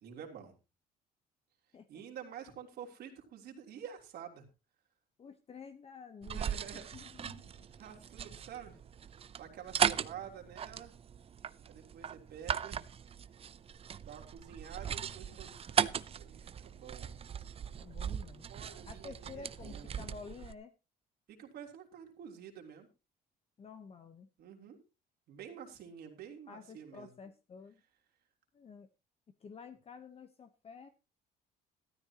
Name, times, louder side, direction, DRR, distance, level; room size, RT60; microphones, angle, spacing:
voice 1, 0.0-0.5 1.9-4.5 6.3-6.9 7.7-8.8 9.3-10.9 11.6-12.9 14.0-17.1 18.1-19.9 21.3-22.9 24.4-24.8 25.3-27.1, right 8 dB, 70° right, 2 dB, 3.3 m, -49 dB
voice 2, 5.2-6.4 6.7-7.6 17.8-18.5 18.9-20.7 23.6-24.3 26.5-27.8 28.5-28.9 29.4-30.9, left 5 dB, 35° left, 9 dB, 1.0 m, -50 dB
sound 1, 6.2-20.5, right 8 dB, 35° right, 0.6 m, -38 dB
14.5 x 13.0 x 2.9 m, 0.29 s
cardioid pair, 110°, 17 cm